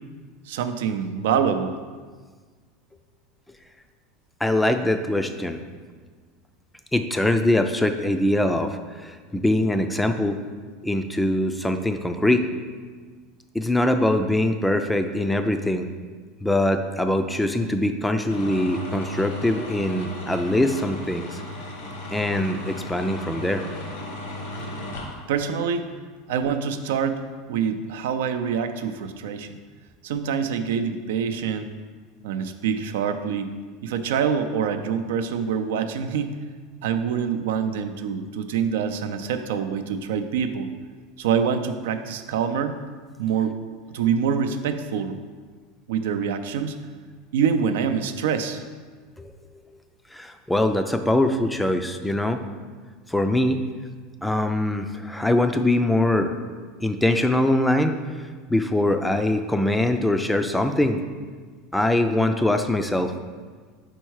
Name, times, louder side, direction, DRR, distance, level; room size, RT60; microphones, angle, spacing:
voice 1, 0.5-1.7 25.3-25.9 26.3-27.2 27.5-29.6 30.0-31.8 32.2-33.5 33.8-36.4 36.8-40.7 41.2-42.8 43.2-43.6 43.9-45.2 45.9-46.8 47.3-48.6, right 7 dB, 85° right, 8 dB, 0.4 m, -25 dB
voice 2, 4.4-5.6 6.9-10.4 10.8-12.5 13.5-15.9 16.4-21.4 22.1-23.7 49.2-49.3 50.1-52.4 53.1-53.6 54.2-56.3 56.8-58.2 58.5-61.0 61.7-63.1, left 1 dB, 5° left, 7 dB, 0.3 m, -23 dB
sound 1, 18.3-25.2, left 1 dB, 80° left, 1.2 m, -35 dB
4.6 x 4.4 x 4.6 m, 1.5 s
supercardioid pair, 125°, 0 cm